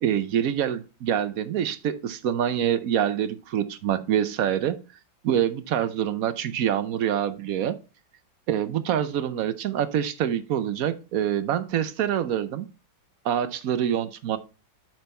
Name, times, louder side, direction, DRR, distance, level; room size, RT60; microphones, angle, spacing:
voice 1, 0.0-4.8 5.2-7.8 8.5-12.7 13.2-14.4, right 9 dB, 65° right, 12 dB, 0.9 m, -26 dB
7.9 x 5.5 x 4.3 m, 0.32 s
omnidirectional pair, 2.1 m